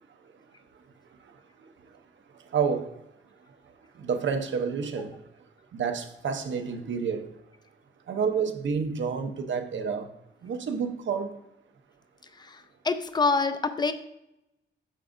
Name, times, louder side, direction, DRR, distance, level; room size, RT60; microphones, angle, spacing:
voice 1, 2.5-2.9 4.0-5.1 5.7-7.3 8.1-10.1 10.4-11.4, right 6 dB, 65° right, 0.8 m, -29 dB
voice 2, 12.4-13.9, left 4 dB, 20° left, 0.4 m, -26 dB
8.8 x 5.9 x 2.6 m
wide cardioid pair, 170°, 20 cm